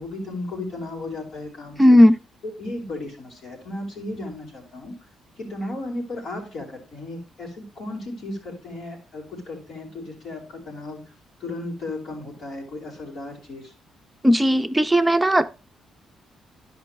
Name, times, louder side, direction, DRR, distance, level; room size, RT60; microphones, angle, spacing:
voice 1, 0.0-2.0 2.4-5.0 5.4-11.0 11.4-13.7, left 2 dB, 65° left, 4.7 m, -35 dB
voice 2, 1.8-2.2 14.2-15.5, equal, 5° right, 0.7 m, -15 dB
11.5 x 5.6 x 3.3 m
cardioid pair, 90°, 0 cm